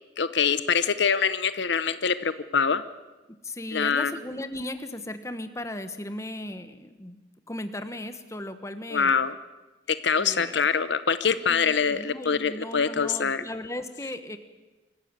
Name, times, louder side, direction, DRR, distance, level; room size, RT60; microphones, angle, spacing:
voice 1, 0.2-2.8 3.7-4.1 8.9-9.3 9.9-13.4, left 6 dB, 65° left, 13 dB, 0.8 m, -24 dB
voice 2, 3.3-7.2 7.5-9.1 10.2-10.6 11.5-14.4, left 1 dB, 15° left, 9 dB, 1.3 m, -36 dB
25.0 x 15.0 x 9.0 m, 1.2 s
head